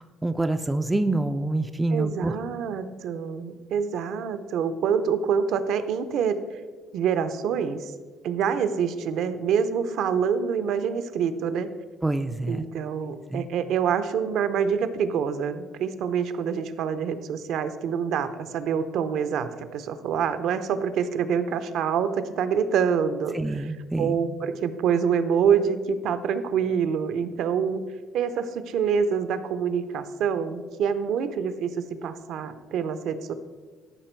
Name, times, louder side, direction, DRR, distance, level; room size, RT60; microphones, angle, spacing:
voice 1, 0.0-2.3 12.0-12.7 13.3-13.5 23.3-24.2, right 2 dB, 10° right, 8 dB, 0.3 m, -26 dB
voice 2, 1.9-6.4 6.9-7.9 8.2-11.7 12.5-23.6 24.0-27.8 28.1-31.8 32.0-33.3, right 7 dB, 60° right, 11 dB, 0.6 m, -26 dB
13.0 x 5.9 x 4.5 m, 1.5 s
cardioid pair, 175°, 0 cm